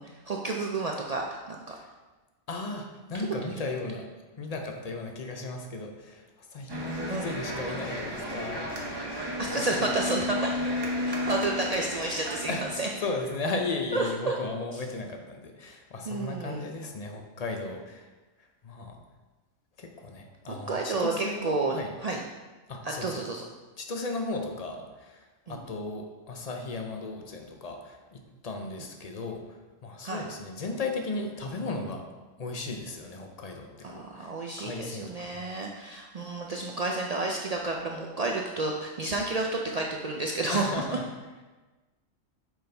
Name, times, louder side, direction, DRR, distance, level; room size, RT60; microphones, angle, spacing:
voice 1, 0.0-1.8 3.3-3.7 7.1-7.4 9.4-10.6 11.0-12.9 13.9-14.4 16.1-16.7 20.5-22.2 22.8-23.4 25.5-25.6 30.0-30.2 33.8-41.0, right 3 dB, 65° right, 0 dB, 0.3 m, -31 dB
voice 2, 2.5-4.1 4.4-9.9 12.5-12.7 13.0-18.1 18.6-19.0 19.8-21.9 22.7-23.2 23.8-29.4 29.8-32.1 32.4-34.3 34.6-35.4 40.5-41.0, left 3 dB, 40° left, 4 dB, 0.6 m, -36 dB
sound 1, 6.7-13.4, left 1 dB, 25° right, 0.8 m, -33 dB
6.2 x 5.2 x 3.4 m, 1.2 s
omnidirectional pair, 1.3 m